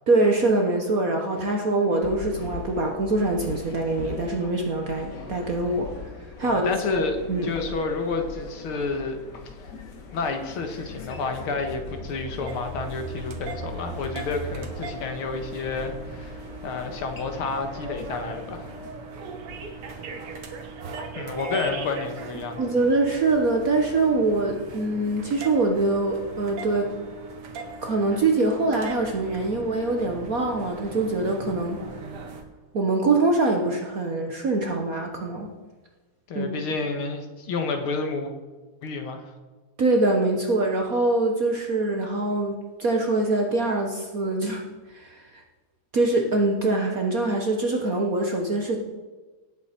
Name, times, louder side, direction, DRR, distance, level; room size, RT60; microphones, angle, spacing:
voice 1, 0.1-5.9 6.4-7.5 22.6-26.9 27.8-31.8 32.7-35.5 36.3-36.5 39.8-44.6 44.9-45.4 45.9-48.8, right 2 dB, 50° right, 2 dB, 1.3 m, -24 dB
sound 1, 2.0-18.9, left 4 dB, 55° left, 2.0 m, -41 dB
voice 2, 6.4-7.2 7.4-9.2 9.6-9.7 10.1-16.4 16.6-18.7 21.2-22.6 36.3-38.3 38.8-39.3, left 4 dB, 75° left, 5 dB, 2.2 m, -30 dB
sound 2, 10.1-14.7, right 2 dB, 20° left, 1.3 m, -39 dB
sound 3, 12.5-32.4, right 3 dB, 85° right, 2.2 m, -39 dB
17.5 x 8.2 x 4.4 m, 1.3 s
omnidirectional pair, 2.4 m